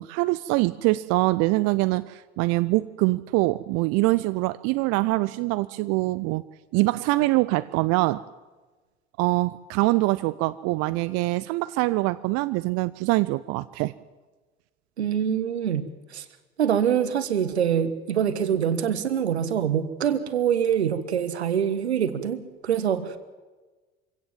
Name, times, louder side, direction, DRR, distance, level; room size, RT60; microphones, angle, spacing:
voice 1, 0.0-6.4 6.7-8.2 9.2-13.9, right 21 dB, 50° right, 16 dB, 0.6 m, -24 dB
voice 2, 15.0-16.2 16.6-23.2, right 8 dB, 80° right, 12 dB, 1.5 m, -25 dB
24.5 x 17.0 x 7.5 m, 1.3 s
figure-of-eight pair, 60°, 33 cm